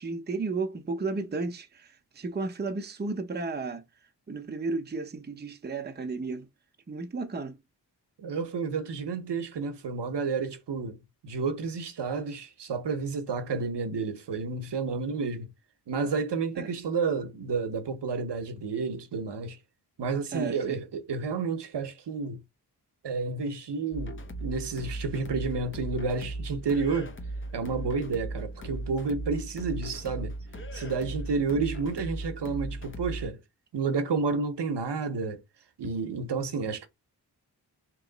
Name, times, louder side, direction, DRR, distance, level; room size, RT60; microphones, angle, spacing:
voice 1, 0.0-3.8 4.3-6.5 6.9-7.6 16.6-16.7 20.3-20.8, right 3 dB, 25° right, 0.6 m, -33 dB
voice 2, 8.2-11.0 11.2-15.5 15.9-19.6 20.0-22.4 23.0-24.1 24.4-27.1 27.5-30.3 30.7-33.4 33.7-35.4 35.8-36.9, right 4 dB, 75° right, 0.8 m, -30 dB
sound 1, 23.9-33.3, right 2 dB, 30° left, 0.6 m, -37 dB
3.1 x 3.0 x 3.8 m
wide cardioid pair, 95°, 41 cm